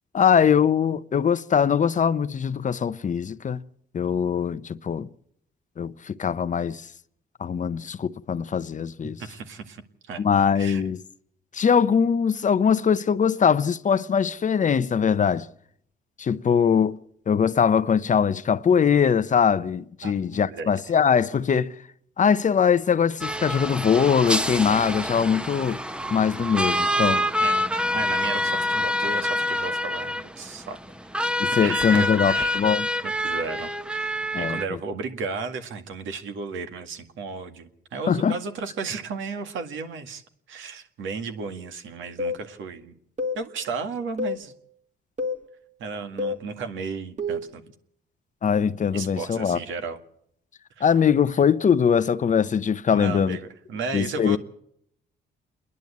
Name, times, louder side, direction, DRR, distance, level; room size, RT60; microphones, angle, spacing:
voice 1, 0.1-3.6 3.9-5.1 5.8-6.8 7.4-9.2 10.2-11.0 11.5-15.5 16.2-17.0 17.3-21.7 22.2-25.8 26.1-27.2 31.4-32.9 34.3-34.6 38.1-38.4 48.4-49.6 50.8-53.4 53.9-54.4, left 7 dB, 40° left, 0.7 m, -22 dB
voice 2, 9.2-10.2 10.6-10.8 20.0-20.8 27.4-30.8 31.6-32.6 33.0-40.2 40.5-42.9 43.3-44.5 45.8-47.6 48.9-50.0 50.8-50.9 52.9-54.4, right 4 dB, 80° right, 2.0 m, -34 dB
sound 1, 23.2-34.6, left 1 dB, 5° right, 0.8 m, -26 dB
sound 2, 42.2-42.4 43.2-43.4 44.2-44.4 45.2-45.4 46.2-46.4 47.2-47.5, left 2 dB, 35° right, 2.1 m, -28 dB
28.0 x 11.0 x 8.5 m
cardioid pair, 90°, 20 cm